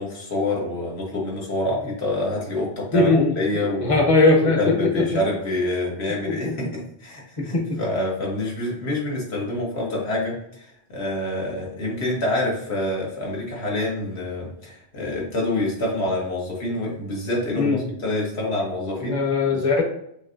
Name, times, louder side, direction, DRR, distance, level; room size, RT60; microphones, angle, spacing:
voice 1, 0.0-4.0 4.6-19.2 19.4-19.7, left 1 dB, 75° left, -3 dB, 1.6 m, -27 dB
voice 2, 2.9-3.3 3.6-5.2 6.3-6.7 7.4-7.8 17.6-17.8 19.0-19.8, left 3 dB, 35° left, 2 dB, 0.9 m, -20 dB
6.7 x 2.9 x 2.5 m, 0.73 s
omnidirectional pair, 1.1 m